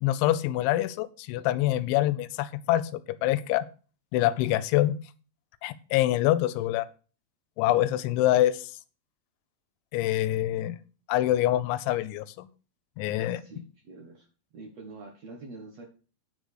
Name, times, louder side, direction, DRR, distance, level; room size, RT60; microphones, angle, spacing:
voice 1, 0.0-3.7 4.1-5.0 5.6-6.9 7.6-8.7 9.9-10.8 11.1-12.5 13.0-13.4, left 14 dB, 90° left, 15 dB, 3.1 m, -25 dB
voice 2, 13.3-14.3 14.5-15.8, right 3 dB, 75° right, 2 dB, 1.5 m, -45 dB
9.9 x 5.2 x 6.4 m, 0.36 s
omnidirectional pair, 5.2 m